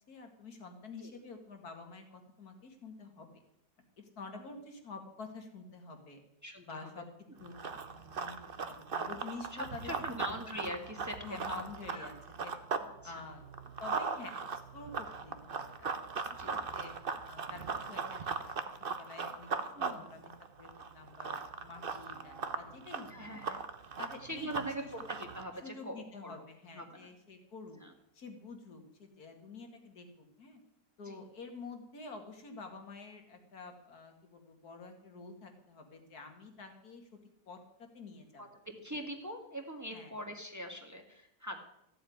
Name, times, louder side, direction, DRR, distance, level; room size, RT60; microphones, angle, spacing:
voice 1, 0.1-3.4 4.0-6.2 6.6-7.1 7.4-9.9 10.3-10.4 11.2-12.1 12.4-12.5 13.0-16.0 16.4-16.9 17.3-19.5 19.8-20.3 20.6-23.5 24.0-24.9 25.6-27.8 28.1-30.6 31.0-37.1 37.5-38.4 39.9-40.1, left 4 dB, 75° left, 5 dB, 2.6 m, -48 dB
voice 2, 6.4-7.4 9.5-11.2 11.5-12.1 12.8-13.2 16.3-16.5 19.7-20.0 23.1-23.7 24.2-26.4 26.7-27.1 27.8-27.9 31.0-31.2 38.4-41.6, equal, 10° right, 3 dB, 1.6 m, -43 dB
Run, 7.4-12.9 13.2-25.4, right 5 dB, 40° right, 1.1 m, -39 dB
14.5 x 7.9 x 9.3 m, 0.82 s
omnidirectional pair, 1.6 m